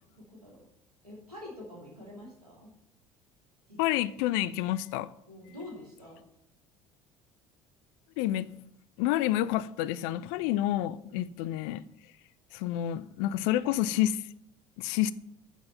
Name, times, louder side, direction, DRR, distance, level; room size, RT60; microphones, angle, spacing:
voice 1, 0.2-0.6 1.0-2.7 3.7-3.8 5.3-6.2 11.0-11.2, left 1 dB, 90° right, 2.6 m, -46 dB
voice 2, 3.8-5.1 8.2-8.5 9.0-11.8 12.5-14.2 14.8-15.1, left 13 dB, 60° left, 0.4 m, -29 dB
8.1 x 6.3 x 5.5 m
figure-of-eight pair, 60°, 19 cm